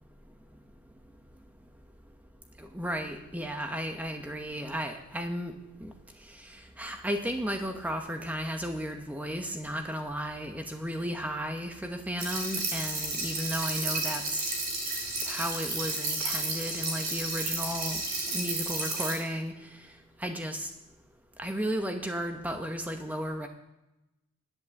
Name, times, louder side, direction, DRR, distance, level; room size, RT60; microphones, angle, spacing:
voice 1, 2.6-5.5 5.8-5.9 6.4-14.5 15.2-18.0 18.3-19.5 20.2-20.7 21.4-23.5, equal, 5° right, 5 dB, 0.9 m, -34 dB
sound 1, 12.2-19.1, right 2 dB, 40° right, 3.3 m, -32 dB
11.0 x 8.2 x 7.1 m, 0.95 s
head